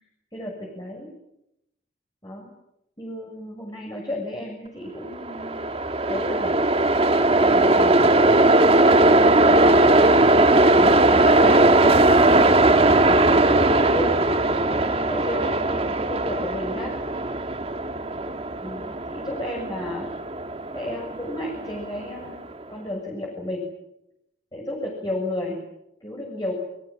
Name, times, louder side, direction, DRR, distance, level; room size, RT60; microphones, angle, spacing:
voice 1, 0.3-1.1 2.2-2.5 3.0-5.6 6.0-6.6 7.4-8.5 10.7-12.0 13.3-14.2 14.7-16.9 18.6-20.1 20.7-22.4 22.7-23.6 24.5-25.6 26.0-26.5, left 1 dB, 20° left, -1 dB, 7.2 m, -33 dB
Train, 5.1-22.3, right 2 dB, 30° right, 1.9 m, -19 dB
29.0 x 23.5 x 7.7 m, 0.84 s
head